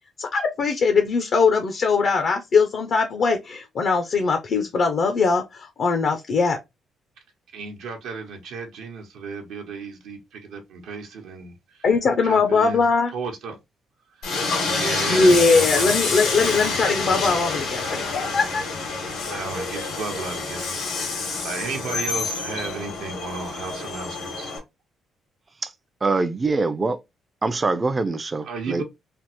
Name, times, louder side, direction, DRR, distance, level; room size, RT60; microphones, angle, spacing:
voice 1, 0.2-6.6 11.8-13.1 15.1-18.6, left 4 dB, 60° left, 0.5 m, -21 dB
voice 2, 7.5-11.5 12.2-12.8 13.1-13.6 14.2-14.3 14.6-16.7 19.3-20.8 21.1-24.5 28.4-28.8, right 4 dB, 85° right, 0.8 m, -34 dB
Train, 14.2-24.6, left 4 dB, 90° left, 1.6 m, -27 dB
voice 3, 26.0-27.0 27.4-28.8, right 3 dB, 30° right, 0.4 m, -24 dB
3.3 x 2.0 x 2.9 m
cardioid pair, 90°, 0 cm